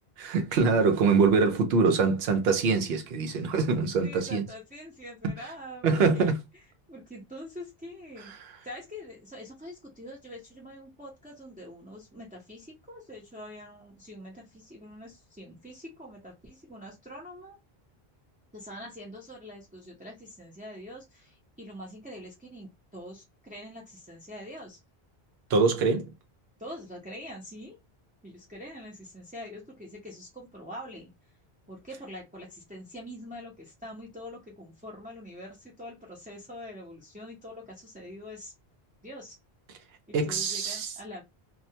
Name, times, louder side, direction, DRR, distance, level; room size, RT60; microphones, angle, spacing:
voice 1, 0.2-4.4 5.2-5.3 5.8-6.4 8.3-8.4 25.5-26.1 40.1-40.9, right 4 dB, 75° right, 0.9 m, -24 dB
voice 2, 4.0-6.4 6.9-8.3 8.6-17.6 18.5-24.8 26.6-27.8 28.2-31.1 31.7-38.5 39.0-39.4 40.1-41.2, left 1 dB, 10° right, 0.5 m, -44 dB
2.4 x 2.1 x 2.7 m
omnidirectional pair, 1.0 m